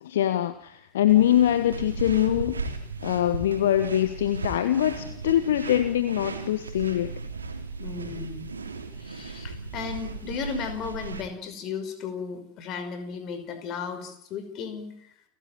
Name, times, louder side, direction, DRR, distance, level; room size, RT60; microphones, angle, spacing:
voice 1, 0.0-2.6 3.0-7.1, left 12 dB, 60° left, 11 dB, 1.5 m, -23 dB
sound 1, 1.1-11.2, right 4 dB, 75° right, 3.4 m, -36 dB
voice 2, 7.8-8.5 9.0-15.1, left 5 dB, 35° left, 9 dB, 5.4 m, -35 dB
29.5 x 14.0 x 9.1 m, 0.69 s
figure-of-eight pair, 90°, 0 cm